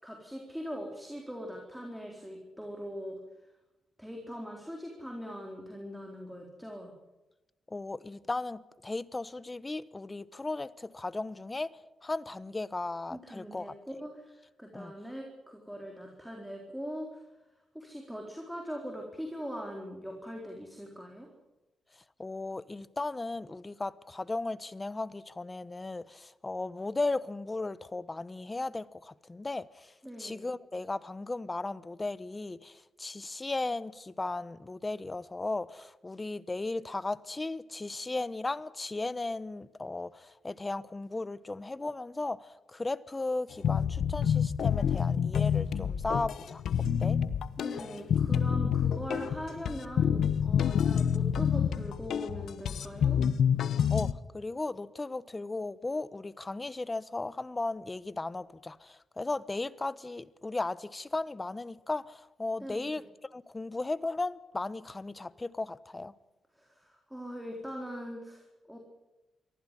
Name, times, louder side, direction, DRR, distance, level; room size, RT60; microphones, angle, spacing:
voice 1, 0.0-3.2 4.0-6.9 13.1-17.2 17.7-21.3 30.0-30.4 47.6-53.2 62.6-62.9 66.5-68.8, equal, 5° right, 4.0 m, -41 dB
voice 2, 7.7-11.7 12.0-13.7 14.7-14.9 22.2-29.9 30.2-46.6 47.0-47.2 53.9-63.0 63.3-66.1, left 2 dB, 20° left, 1.0 m, -36 dB
sound 1, 43.6-54.1, left 8 dB, 75° left, 1.0 m, -28 dB
23.5 x 15.0 x 10.0 m
cardioid pair, 100°, 0 cm